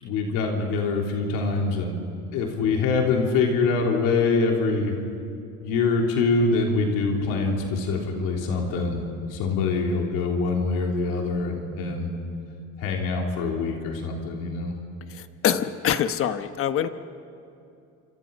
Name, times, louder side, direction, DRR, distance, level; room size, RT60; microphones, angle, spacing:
voice 1, 0.0-2.0 2.3-5.0 5.6-9.0 9.3-12.1 12.8-14.7, left 4 dB, 85° left, 0 dB, 3.5 m, -24 dB
voice 2, 15.1-16.9, left 9 dB, 45° left, 10 dB, 1.1 m, -25 dB
28.5 x 26.5 x 5.4 m, 2.6 s
cardioid pair, 140°, 31 cm